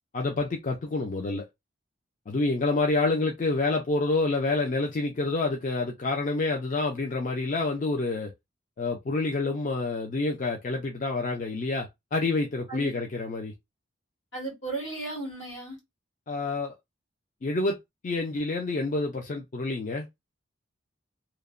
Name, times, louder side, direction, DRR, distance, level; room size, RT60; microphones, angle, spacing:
voice 1, 0.1-1.4 2.3-8.3 8.8-13.5 16.3-16.7 17.4-17.8 18.0-20.1, left 3 dB, 40° left, 0.4 m, -28 dB
voice 2, 12.7-13.0 14.3-15.8, right 2 dB, 75° left, 1.8 m, -35 dB
2.9 x 2.1 x 2.3 m
head